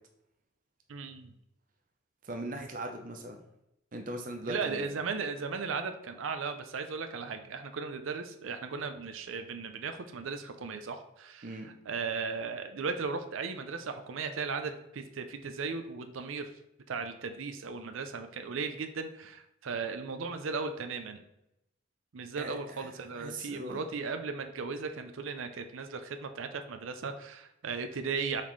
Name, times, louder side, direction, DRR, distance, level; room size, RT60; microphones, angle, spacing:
voice 1, 0.9-1.3 4.4-11.5 11.9-16.5 16.9-21.2 22.1-28.4, right 5 dB, 85° right, 7 dB, 0.5 m, -36 dB
voice 2, 2.2-3.4 3.9-4.9 11.4-11.7 22.3-23.8, right 1 dB, 40° right, 3 dB, 0.6 m, -39 dB
7.2 x 4.1 x 3.1 m, 0.86 s
head